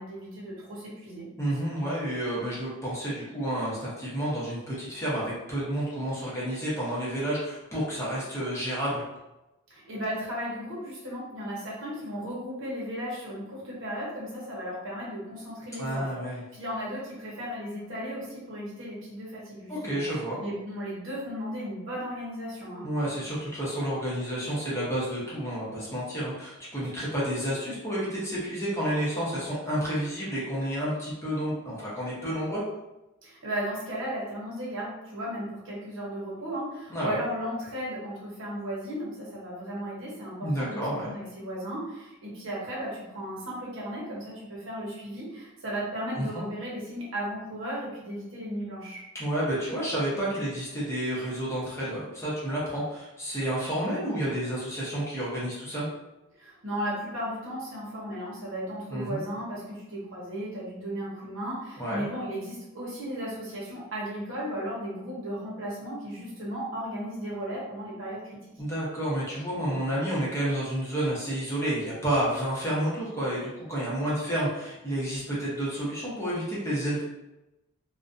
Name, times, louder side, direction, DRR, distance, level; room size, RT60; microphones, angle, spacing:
voice 1, 0.0-1.3 9.7-16.1 16.5-20.0 20.4-22.9 33.2-49.0 56.4-68.5, equal, 65° right, -5 dB, 0.9 m, -35 dB
voice 2, 1.4-9.0 15.8-16.4 19.7-20.4 22.8-32.6 36.9-37.2 40.4-41.1 46.1-46.4 49.1-55.9 58.9-59.2 61.8-62.0 68.6-77.0, right 1 dB, 15° left, -8 dB, 0.7 m, -30 dB
2.4 x 2.2 x 2.5 m, 0.97 s
head